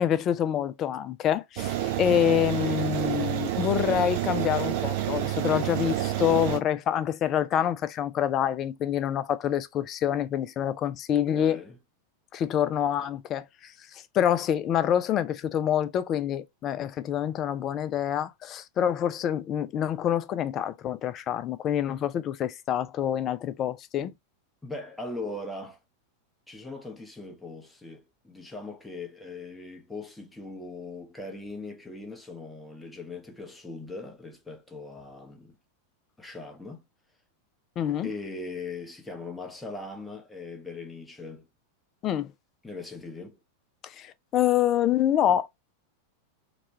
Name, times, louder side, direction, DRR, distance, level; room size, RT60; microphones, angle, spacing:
voice 1, 0.0-11.6 12.3-24.1 37.8-38.1 42.0-42.3 43.8-45.5, left 10 dB, 30° left, 0.3 m, -26 dB
sound 1, 1.6-6.6, right 13 dB, 50° right, 0.4 m, -29 dB
voice 2, 11.1-11.8 24.6-25.8 26.5-35.6 36.2-36.8 38.0-41.5 42.6-43.4, left 3 dB, 5° left, 0.7 m, -40 dB
3.0 x 2.2 x 2.7 m
figure-of-eight pair, 90°, 0 cm